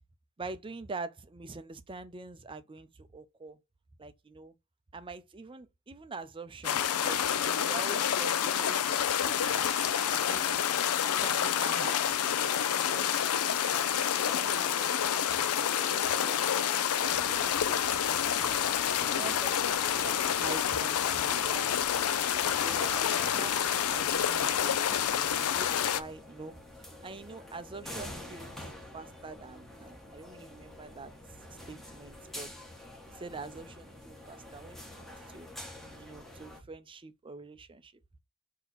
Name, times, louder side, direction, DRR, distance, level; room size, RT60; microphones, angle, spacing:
voice 1, 0.4-3.6 4.0-4.5 4.9-10.6 11.1-13.1 14.2-17.1 17.4-18.2 19.1-22.1 22.6-23.5 23.9-24.8 25.1-26.5 27.0-28.7 28.9-31.4 31.7-32.5 33.1-35.5 36.0-37.9, right 3 dB, 25° right, 0.5 m, -45 dB
sound 1, 6.6-26.0, left 9 dB, 80° left, 0.5 m, -28 dB
sound 2, 17.0-36.6, left 1 dB, ahead, 1.0 m, -47 dB
4.1 x 2.9 x 4.0 m
head